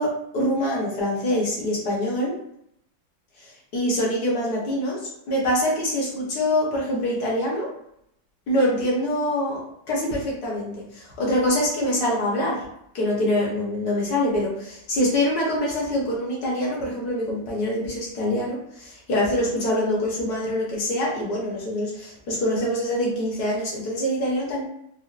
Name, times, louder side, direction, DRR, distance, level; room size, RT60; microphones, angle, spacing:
voice 1, 0.0-2.3 3.4-5.0 5.3-7.7 8.5-9.6 9.9-12.6 12.9-24.6, left 1 dB, 55° left, -4 dB, 1.5 m, -25 dB
4.4 x 2.0 x 2.5 m, 0.75 s
omnidirectional pair, 2.1 m